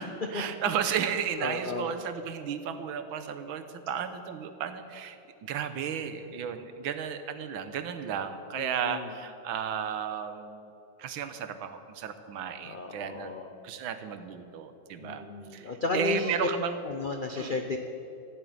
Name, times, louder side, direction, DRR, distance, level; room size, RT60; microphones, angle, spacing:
voice 1, 0.0-10.7 11.0-13.3 13.6-15.2 15.5-16.8 17.4-17.5, right 8 dB, 85° right, 10 dB, 1.7 m, -34 dB
voice 2, 1.4-1.9 8.5-9.1 12.6-13.5 15.0-16.4 16.8-17.8, left 3 dB, 80° left, 4 dB, 0.4 m, -33 dB
13.5 x 7.9 x 9.4 m, 2.8 s
omnidirectional pair, 2.1 m